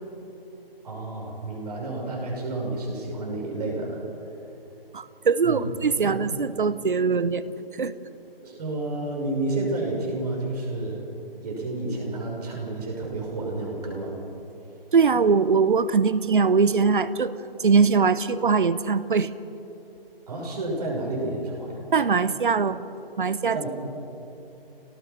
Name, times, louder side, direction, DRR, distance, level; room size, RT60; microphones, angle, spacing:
voice 1, 0.8-4.3 5.4-5.7 6.0-6.2 8.4-11.0 11.4-14.2 20.3-21.8 23.5-23.7, right 2 dB, 40° right, -1 dB, 6.4 m, -30 dB
voice 2, 4.9-7.9 14.9-17.3 17.6-19.3 21.9-22.9 23.2-23.6, right 5 dB, 55° right, 15 dB, 1.0 m, -22 dB
26.0 x 18.5 x 5.9 m, 2.8 s
figure-of-eight pair, 150°, 30 cm